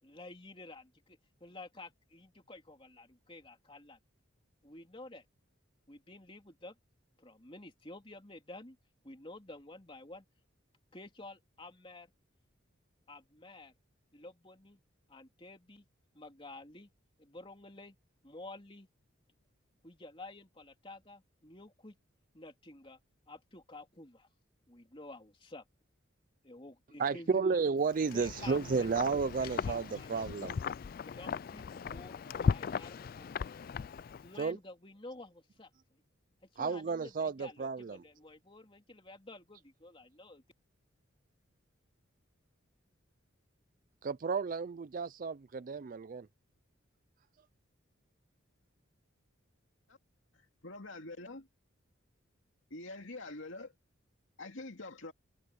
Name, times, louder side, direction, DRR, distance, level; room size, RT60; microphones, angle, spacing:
voice 1, 0.0-4.0 4.6-5.2 5.9-6.7 7.2-8.8 9.0-10.2 10.9-12.1 13.1-13.7 14.1-14.8 15.1-15.9 16.1-16.9 17.2-17.9 18.2-18.9 19.8-22.0 22.3-23.0 23.3-24.3 24.7-25.6 26.4-27.6 28.1-29.0 29.4-30.5 31.0-33.5 34.2-35.7 36.5-40.4, left 2 dB, 25° left, 3.1 m, -51 dB
voice 2, 27.0-30.6 34.4-34.6 36.6-38.0 44.0-46.3, right 5 dB, 40° right, 0.4 m, -32 dB
Wind, 27.9-34.4, left 5 dB, 45° left, 0.3 m, -37 dB
voice 3, 50.6-51.5 52.7-53.7 54.4-55.1, left 2 dB, 70° left, 2.4 m, -45 dB
head